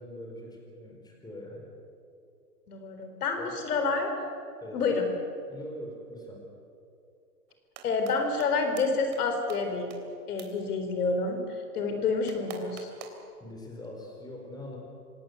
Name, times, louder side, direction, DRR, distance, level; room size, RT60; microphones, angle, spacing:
voice 1, 0.0-1.7 3.4-3.6 4.6-4.8 5.5-6.4 13.4-14.8, left 1 dB, 10° left, 1 dB, 4.6 m, -43 dB
voice 2, 2.7-4.1 4.7-5.1 7.8-9.9 10.3-11.4 11.7-12.9, left 4 dB, 65° left, 5 dB, 4.4 m, -28 dB
sound 1, 7.5-8.1 8.4-8.5 8.8-8.9 9.1-9.2 9.5-9.6 9.9-10.0 10.4-10.5 12.3-13.2, right 11 dB, 45° right, 3.6 m, -44 dB
26.0 x 19.0 x 8.1 m, 2.5 s
hypercardioid pair, 135°, 49 cm